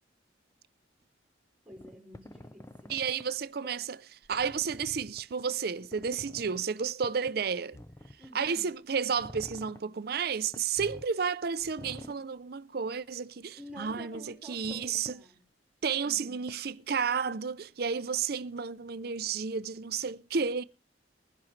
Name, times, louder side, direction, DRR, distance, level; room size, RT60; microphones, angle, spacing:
voice 1, 1.6-2.9 4.5-4.7 8.2-8.7 13.5-15.4 16.0-16.4, equal, 5° right, 5.0 m, -49 dB
sound 1, 1.7-3.2 4.2-5.4 5.8-6.6 7.0-7.3 7.7-8.5 9.1-9.8 10.5-11.1 11.6-12.2 13.6-14.2 14.6-15.1 16.5-16.6, left 1 dB, 15° left, 0.6 m, -48 dB
voice 2, 2.9-3.8 4.3-7.8 8.3-15.2 15.8-20.6, right 6 dB, 55° right, 0.6 m, -32 dB
21.5 x 10.5 x 3.2 m
head